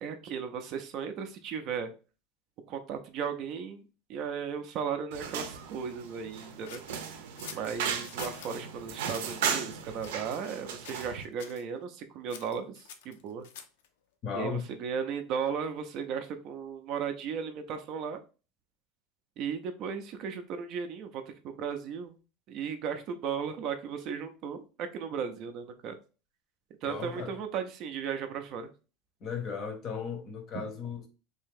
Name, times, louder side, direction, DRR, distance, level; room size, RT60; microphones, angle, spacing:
voice 1, 0.0-1.9 2.7-3.8 4.1-6.8 7.5-13.5 14.3-18.2 19.4-22.2 22.5-25.9 26.8-28.7 30.5-30.6, right 7 dB, 35° right, 0.4 m, -36 dB
sound 1, 5.1-11.2, right 7 dB, 85° right, 0.6 m, -36 dB
sound 2, 6.7-8.6 9.0-9.4 10.0-10.6 10.8-11.1 11.4-11.6 12.3-13.9, left 8 dB, 85° left, 0.5 m, -48 dB
voice 2, 14.2-14.6 26.8-27.4 29.2-31.1, left 6 dB, 30° left, 0.6 m, -36 dB
3.3 x 2.7 x 3.6 m
supercardioid pair, 175°, 0 cm